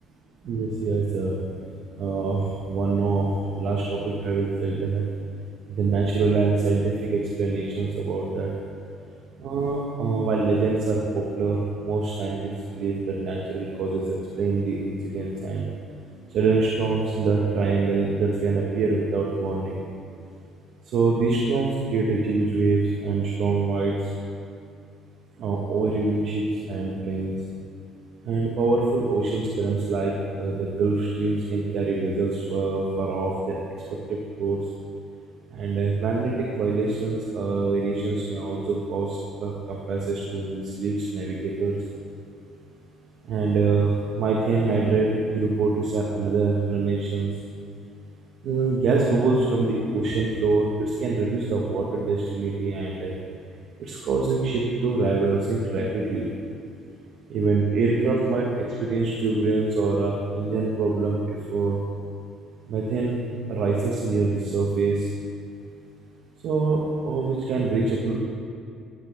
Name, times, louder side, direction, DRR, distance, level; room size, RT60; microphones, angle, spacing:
voice 1, 0.4-1.3 2.0-3.3 3.6-5.0 5.8-8.5 9.4-15.7 16.3-19.8 20.9-23.9 25.4-26.4 26.7-27.4 28.3-30.1 30.4-33.6 34.1-34.6 35.5-41.8 43.3-43.9 44.2-47.3 48.4-53.1 53.8-56.3 57.3-58.5 58.8-61.2 61.5-61.8 62.7-63.1 63.5-65.1 66.4-66.8 67.0-68.2, right 3 dB, 60° right, -2 dB, 1.2 m, -24 dB
13.0 x 9.4 x 3.5 m, 2.4 s
cardioid pair, 150°, 0 cm